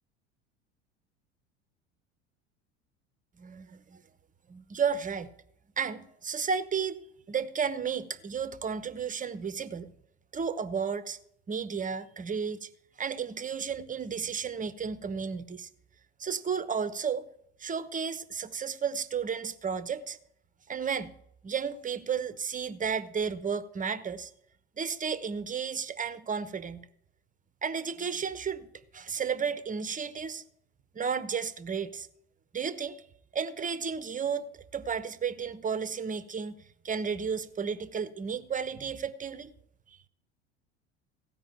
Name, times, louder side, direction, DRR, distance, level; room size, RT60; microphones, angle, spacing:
voice 1, 3.4-4.0 4.5-5.3 5.8-7.0 7.3-9.9 10.3-11.2 11.5-12.7 13.0-15.7 16.2-17.3 17.6-20.2 20.7-21.1 21.4-24.3 24.8-26.9 27.6-28.7 28.9-30.4 30.9-32.1 32.5-33.0 33.3-36.5 36.8-39.5, right 6 dB, 20° right, 1.0 m, -33 dB
16.0 x 5.4 x 8.8 m
hypercardioid pair, 75°, 36 cm